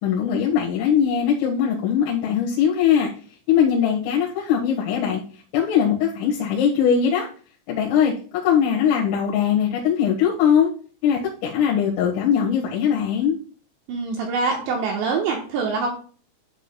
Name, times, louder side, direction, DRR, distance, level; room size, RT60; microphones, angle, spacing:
voice 1, 0.0-3.1 3.5-5.2 5.5-7.3 7.7-8.1 8.4-10.7 11.0-13.4, left 8 dB, 80° left, -4 dB, 4.1 m, -20 dB
voice 2, 13.9-15.9, right 4 dB, 75° right, 0 dB, 2.9 m, -24 dB
11.5 x 8.7 x 2.2 m, 0.42 s
omnidirectional pair, 5.9 m